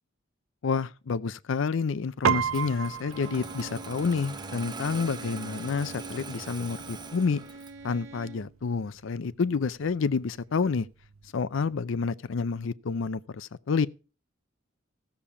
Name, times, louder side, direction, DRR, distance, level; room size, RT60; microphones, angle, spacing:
voice 1, 0.6-7.4 7.8-10.9 11.3-13.9, left 5 dB, 70° left, 0.5 m, -29 dB
Piano, 2.2-11.8, right 7 dB, 90° right, 0.5 m, -36 dB
Engine starting, 2.5-7.9, right 4 dB, 20° right, 0.9 m, -42 dB
Bowed string instrument, 3.1-8.6, right 2 dB, 65° right, 2.2 m, -45 dB
15.5 x 7.2 x 4.9 m
head